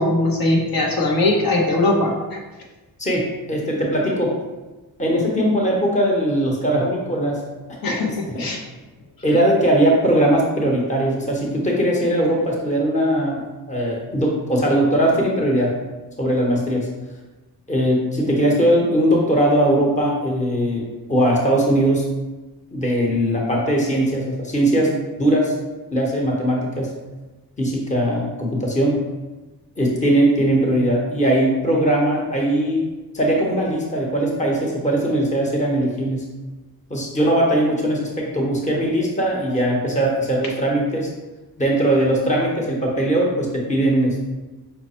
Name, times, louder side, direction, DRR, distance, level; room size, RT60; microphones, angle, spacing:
voice 1, 0.0-2.4 7.8-8.6, left 2 dB, 65° left, -1 dB, 1.1 m, -20 dB
voice 2, 3.0-4.3 5.0-7.4 7.9-8.0 8.3-8.5 9.2-13.4 13.7-15.7 16.2-16.9 17.7-22.1 22.7-24.9 25.2-25.5 25.9-26.9 27.6-29.0 29.8-32.8 33.1-36.2 36.9-41.1 41.6-44.2, right 1 dB, 20° left, -2 dB, 1.0 m, -20 dB
5.6 x 2.1 x 4.2 m, 1.2 s
cardioid pair, 90°, 38 cm